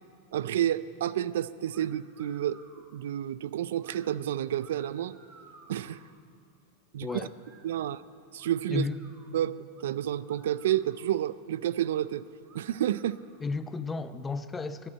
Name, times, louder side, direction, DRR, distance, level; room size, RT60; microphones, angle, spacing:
voice 1, 0.3-2.6 2.9-5.1 5.7-6.0 6.9-7.2 7.6-8.0 8.3-8.9 9.3-12.3 12.5-13.2, right 11 dB, 80° right, 17 dB, 0.4 m, -30 dB
sound 1, 1.7-1.9 2.1-2.9 3.7-4.0 4.5-6.1 7.0-7.9 8.4-9.3 9.7-9.9 10.2-11.3 11.8-12.0 12.4-13.5, right 3 dB, 35° right, 2.0 m, -57 dB
voice 2, 7.0-7.3 8.7-9.0 13.4-14.9, left 4 dB, 15° left, 11 dB, 0.6 m, -33 dB
10.5 x 10.0 x 8.7 m, 2.4 s
hypercardioid pair, 120°, 0 cm